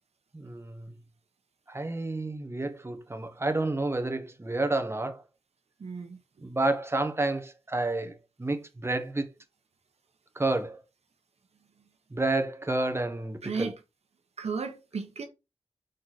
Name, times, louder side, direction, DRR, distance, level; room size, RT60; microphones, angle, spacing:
voice 1, 0.3-1.0 1.7-5.2 6.4-9.3 10.3-10.8 12.1-13.7, right 2 dB, 25° right, 1.1 m, -30 dB
voice 2, 5.8-6.2 13.4-13.7 14.4-15.3, right 5 dB, 80° right, 1.0 m, -34 dB
6.5 x 4.1 x 4.1 m
wide cardioid pair, 70°, 11 cm